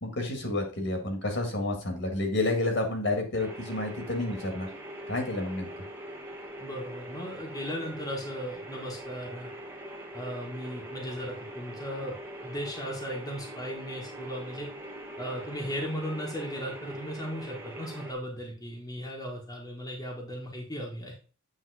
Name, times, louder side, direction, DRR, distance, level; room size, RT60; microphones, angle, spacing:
voice 1, 0.0-4.7 5.1-5.7, left 2 dB, 55° left, 3 dB, 1.9 m, -30 dB
sound 1, 3.4-18.1, equal, 10° right, 1.1 m, -42 dB
voice 2, 6.6-9.5 10.1-12.2 12.4-14.7 15.2-21.1, equal, 15° left, -2 dB, 1.4 m, -37 dB
8.3 x 3.6 x 4.8 m, 0.35 s
head